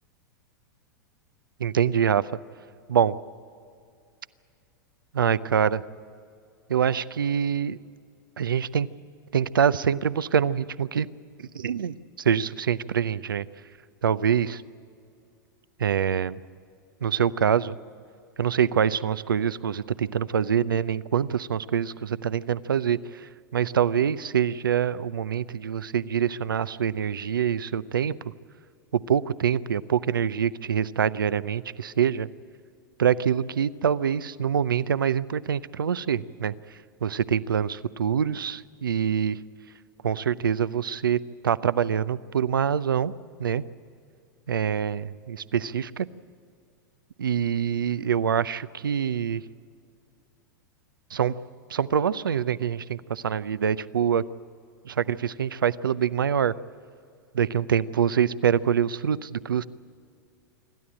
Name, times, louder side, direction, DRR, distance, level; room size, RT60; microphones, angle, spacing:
voice 1, 1.6-2.3 2.9-3.2 5.1-5.8 6.7-7.8 8.4-8.9 9.3-11.1 11.4-13.5 14.0-14.6 15.8-16.4 17.0-17.7 18.4-28.3 28.9-32.3 33.0-36.5 37.0-39.4 40.0-43.1 43.4-43.6 44.5-46.1 47.2-49.4 51.1-51.3 51.7-54.2 54.8-56.5 57.3-59.7, right 8 dB, 90° right, 16 dB, 0.6 m, -25 dB
27.0 x 12.5 x 8.7 m, 2.4 s
hypercardioid pair, 105°, 11 cm